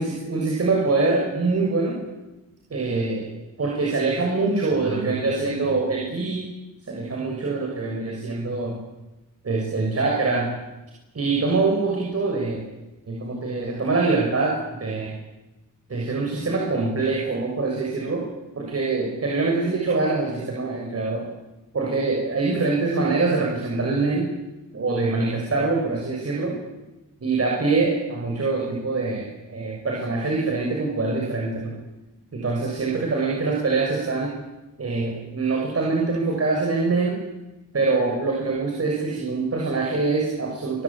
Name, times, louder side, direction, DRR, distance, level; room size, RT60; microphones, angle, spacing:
voice 1, 0.0-2.0 2.7-3.3 3.6-6.5 6.9-8.8 9.4-10.5 11.1-12.7 13.1-15.2 15.9-18.2 18.6-21.3 21.7-24.3 24.7-26.6 27.2-31.8 32.3-34.3 34.8-37.2 37.7-40.8, right 3 dB, 45° right, -1 dB, 6.9 m, -24 dB
28.0 x 22.5 x 8.9 m, 1.0 s
wide cardioid pair, 105°, 33 cm